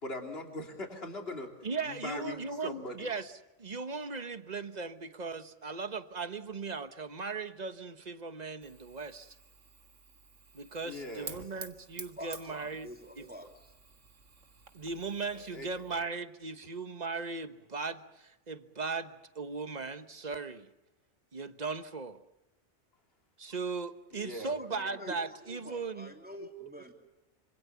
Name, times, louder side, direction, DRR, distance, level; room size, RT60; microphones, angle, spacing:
voice 1, 0.0-1.5 1.8-3.1 10.8-11.4 15.3-15.7 24.1-24.5, left 2 dB, 55° left, 2 dB, 3.4 m, -40 dB
voice 2, 1.6-3.3 3.6-9.3 10.5-12.9 13.2-13.3 14.7-20.7 21.3-22.2 23.4-26.1, right 4 dB, 35° right, 10 dB, 1.2 m, -38 dB
Fire, 8.6-16.1, right 5 dB, 85° right, 2.0 m, -51 dB
voice 3, 12.8-13.7 24.6-26.9, equal, 5° right, 2 dB, 3.3 m, -46 dB
26.5 x 26.5 x 7.1 m, 0.98 s
omnidirectional pair, 1.2 m